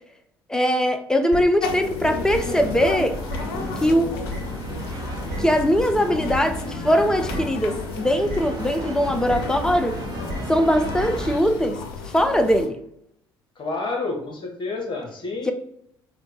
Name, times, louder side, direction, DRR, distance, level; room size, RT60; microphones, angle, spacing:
voice 1, 0.5-3.2 3.8-4.2 5.4-10.0 10.5-11.8 12.1-12.8 15.5-15.6, equal, 5° left, 7 dB, 0.5 m, -21 dB
sound 1, 1.3-1.4 2.3-2.4 3.3-3.4 4.3-4.4 5.3-5.4 6.3-6.4 7.3-7.4 8.3-8.4 9.3-9.4 10.3-10.4 11.0-11.1, equal, 65° right, 1.0 m, -30 dB
sound 2, 1.6-12.7, left 5 dB, 70° left, 0.5 m, -33 dB
sound 3, 2.0-11.4, right 1 dB, 30° right, 0.8 m, -34 dB
voice 2, 13.6-15.5, left 3 dB, 40° left, 2 dB, 1.1 m, -29 dB
4.2 x 2.2 x 2.8 m, 0.74 s
figure-of-eight pair, 55°, 13 cm